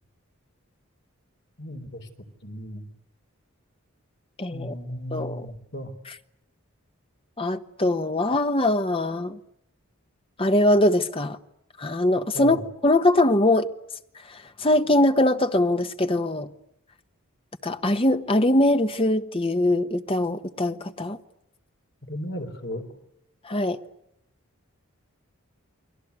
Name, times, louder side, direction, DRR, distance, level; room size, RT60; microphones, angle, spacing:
voice 1, 1.6-2.1 2.4-2.9 4.5-5.9 12.3-12.6 22.1-22.8, equal, 50° left, 3.8 m, -35 dB
voice 2, 4.4-4.7 5.1-5.5 6.1-6.2 7.4-9.4 10.4-11.4 11.8-13.7 14.3-16.5 17.6-21.2 23.4-23.8, left 1 dB, 25° left, 1.1 m, -22 dB
29.5 x 22.0 x 8.2 m
head